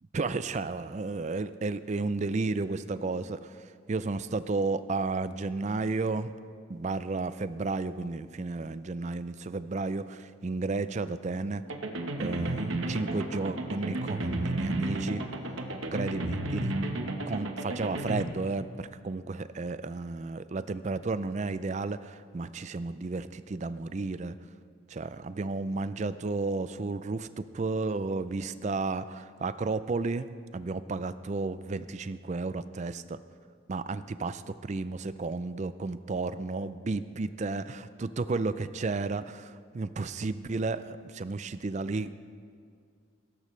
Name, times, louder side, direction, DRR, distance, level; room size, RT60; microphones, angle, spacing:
voice 1, 0.1-6.3 6.7-11.6 12.2-15.2 15.9-16.8 17.3-24.4 24.9-30.3 30.5-33.2 33.7-42.2, right 3 dB, 35° right, 13 dB, 0.4 m, -32 dB
sound 1, 11.7-18.2, right 1 dB, 85° right, 1.1 m, -33 dB
17.0 x 14.0 x 3.2 m, 2.2 s
head